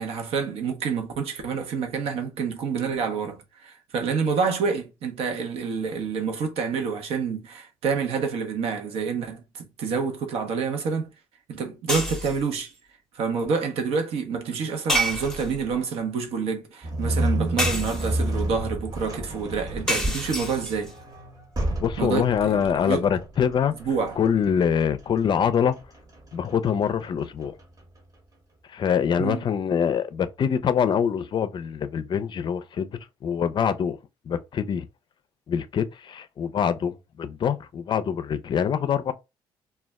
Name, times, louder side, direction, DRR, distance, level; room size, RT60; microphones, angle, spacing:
voice 1, 0.0-11.1 11.5-12.7 13.1-20.9 22.0-23.1 23.8-24.2 29.2-29.5, right 5 dB, 70° right, 0.7 m, -28 dB
sound 1, 11.9-12.5 14.9-15.7 17.6-18.4 19.9-20.9, equal, 5° left, 0.7 m, -28 dB
sound 2, 16.8-28.0, right 1 dB, 35° right, 0.9 m, -31 dB
voice 2, 21.8-23.7 24.2-25.8 26.3-27.5 28.7-32.9 33.2-34.0 34.3-34.9 35.5-39.1, left 7 dB, 50° left, 0.4 m, -24 dB
2.2 x 2.0 x 3.4 m
supercardioid pair, 60°, 10 cm